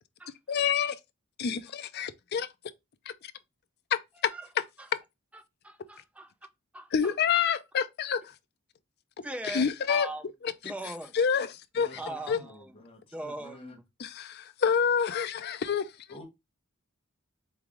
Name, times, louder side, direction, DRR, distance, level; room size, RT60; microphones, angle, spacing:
voice 1, 0.5-1.0 1.4-2.5 4.2-4.3 6.9-8.2 9.4-10.1 10.4-10.5 11.1-12.0 12.3-12.4 14.0-15.9, left 7 dB, 50° left, 0.4 m, -27 dB
voice 2, 5.3-6.3 6.7-7.1 9.2-10.2 10.6-11.1 12.0-12.7 13.1-13.8, right 1 dB, 5° right, 0.4 m, -40 dB
voice 3, 11.7-13.8 16.1-16.2, left 1 dB, 25° left, 1.0 m, -49 dB
3.5 x 3.3 x 3.7 m
head